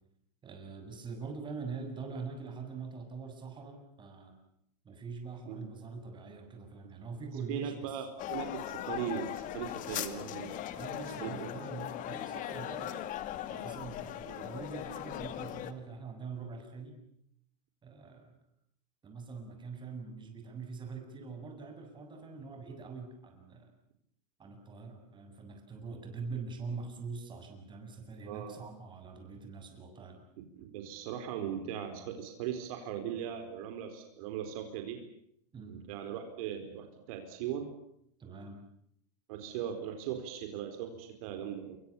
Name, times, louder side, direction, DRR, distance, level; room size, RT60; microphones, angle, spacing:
voice 1, 0.4-4.3 4.8-8.0 10.7-13.1 13.5-17.0 17.8-18.3 19.0-23.7 24.4-30.2 35.5-35.8 38.2-38.6, right 4 dB, 25° right, 5 dB, 7.5 m, -43 dB
voice 2, 7.5-10.6 11.2-11.5 14.2-14.4 28.2-28.6 30.4-35.0 35.7-37.7 39.3-41.8, right 9 dB, 60° right, 5 dB, 4.5 m, -39 dB
sound 1, 8.2-15.7, left 12 dB, 40° left, 2.4 m, -39 dB
28.0 x 24.5 x 7.3 m, 0.73 s
hypercardioid pair, 120°, 20 cm